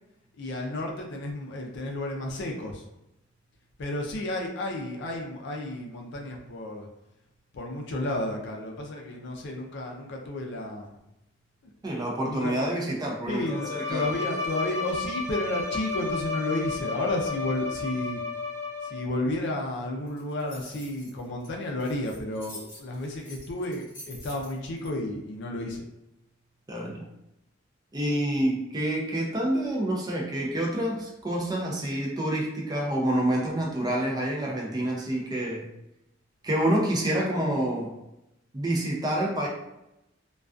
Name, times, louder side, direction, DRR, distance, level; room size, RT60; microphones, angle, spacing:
voice 1, 0.4-2.8 3.8-6.9 7.5-11.0 12.2-12.6 13.3-18.2 18.8-25.9, left 1 dB, 60° left, 1 dB, 0.4 m, -32 dB
voice 2, 11.8-14.2 26.7-27.0 27.9-35.7 36.4-38.0 38.5-39.5, right 1 dB, 20° right, -2 dB, 0.4 m, -28 dB
Bowed string instrument, 13.4-19.3, left 4 dB, 75° right, 0.5 m, -33 dB
sound 1, 20.1-24.9, left 1 dB, 45° left, 1.0 m, -47 dB
2.3 x 2.3 x 2.4 m, 0.87 s
head